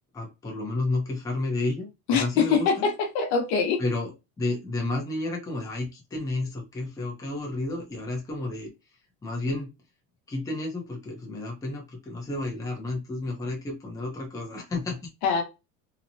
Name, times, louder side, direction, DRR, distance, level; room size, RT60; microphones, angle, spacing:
voice 1, 0.1-2.9 3.8-8.7 9.2-9.7 10.3-15.1, left 2 dB, 10° left, -1 dB, 0.6 m, -31 dB
voice 2, 2.1-3.8 15.2-15.4, left 5 dB, 65° left, 5 dB, 0.9 m, -23 dB
2.9 x 2.1 x 2.6 m, 0.25 s
cardioid pair, 145°, 41 cm